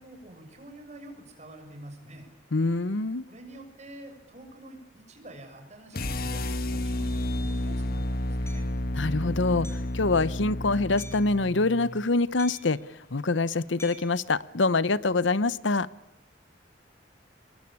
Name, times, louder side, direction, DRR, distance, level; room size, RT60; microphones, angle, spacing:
voice 1, 0.0-2.3 3.3-8.7, right 1 dB, 35° right, 6.6 m, -47 dB
voice 2, 2.5-3.2 8.9-12.8 13.1-15.9, left 3 dB, 80° left, 0.9 m, -25 dB
sound 1, 5.9-12.1, left 1 dB, 50° left, 1.4 m, -31 dB
Hammer, 8.5-8.7 9.6-10.0 11.0-11.3 12.4-12.8 13.8-14.2, left 1 dB, 15° left, 5.0 m, -46 dB
25.5 x 21.5 x 8.7 m
head